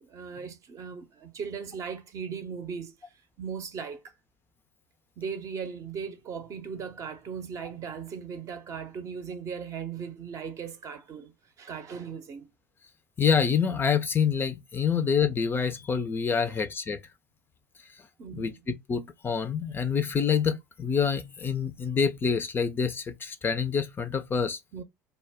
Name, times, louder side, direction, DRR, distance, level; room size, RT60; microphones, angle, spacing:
voice 1, 0.0-2.9 3.4-4.1 5.2-11.3 11.6-12.5 16.4-16.6 18.2-18.6 24.7-24.8, right 6 dB, 40° right, 0.6 m, -38 dB
voice 2, 13.2-17.0 18.4-18.5 18.9-24.6, left 6 dB, 25° left, 0.4 m, -26 dB
2.1 x 2.1 x 3.4 m
hypercardioid pair, 75°, 9 cm